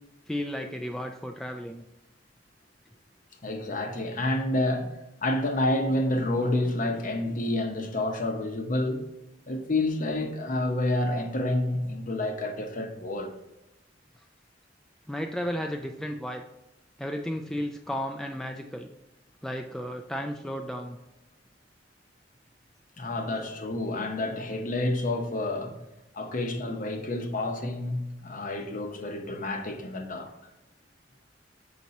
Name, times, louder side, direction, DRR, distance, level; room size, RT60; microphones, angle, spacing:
voice 1, 0.3-1.8 15.1-16.4 17.0-18.9 19.4-21.0, equal, 5° left, 0.3 m, -33 dB
voice 2, 3.4-4.9 5.2-9.0 9.5-13.3 23.0-25.8 26.1-30.3, left 1 dB, 45° left, 0.8 m, -29 dB
5.9 x 4.1 x 4.3 m
head